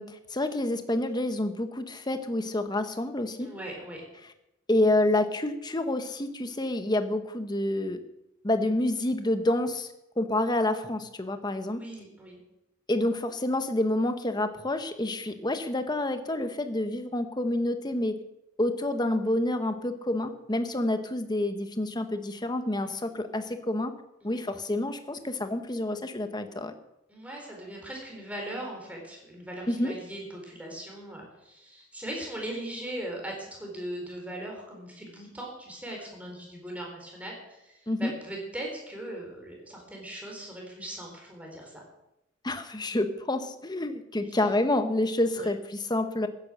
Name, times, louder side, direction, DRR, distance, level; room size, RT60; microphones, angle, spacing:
voice 1, 0.0-3.5 4.7-8.0 8.4-11.8 12.9-18.2 18.6-23.9 24.2-26.7 29.7-29.9 37.9-38.1 42.4-46.3, left 1 dB, 20° left, 8 dB, 1.0 m, -28 dB
voice 2, 3.4-4.0 11.7-12.4 15.3-15.4 22.8-23.0 24.2-24.4 27.1-41.8 44.2-44.4 45.4-45.5, right 1 dB, 5° right, -1 dB, 4.3 m, -39 dB
15.5 x 10.0 x 6.4 m, 0.90 s
head